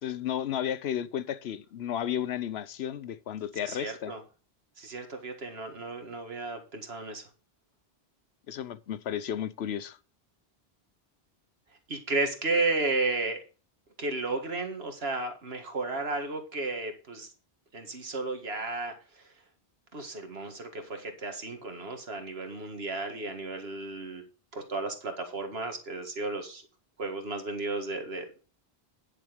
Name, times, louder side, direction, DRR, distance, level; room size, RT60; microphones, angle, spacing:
voice 1, 0.0-4.1 8.5-10.0, left 10 dB, 90° left, 1.0 m, -33 dB
voice 2, 3.6-4.2 4.8-7.2 11.9-13.4 14.0-17.3 17.7-19.2 19.9-24.2 24.5-26.6 27.0-28.4, right 3 dB, 75° right, 2.0 m, -33 dB
10.5 x 6.8 x 5.1 m
omnidirectional pair, 1.0 m